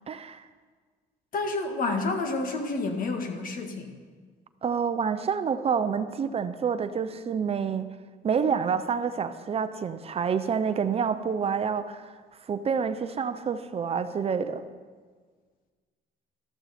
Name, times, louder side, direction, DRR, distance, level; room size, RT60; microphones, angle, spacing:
voice 1, 0.1-0.4 4.6-7.9 8.2-12.1 12.5-14.6, right 6 dB, 35° right, 11 dB, 0.6 m, -28 dB
voice 2, 1.3-3.9, left 3 dB, 55° left, 4 dB, 1.8 m, -29 dB
13.0 x 13.0 x 4.3 m, 1.5 s
cardioid pair, 110°, 17 cm